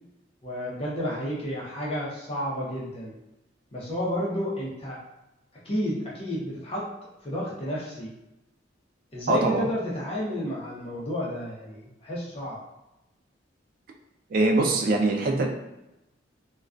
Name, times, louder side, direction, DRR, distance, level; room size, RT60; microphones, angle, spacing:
voice 1, 0.4-3.1 3.7-5.0 5.6-6.9 7.2-8.1 9.1-12.6, equal, 35° left, -5 dB, 0.6 m, -31 dB
voice 2, 9.3-9.7 14.3-15.5, right 2 dB, 50° right, 2 dB, 0.3 m, -22 dB
2.2 x 2.2 x 2.4 m, 0.93 s
head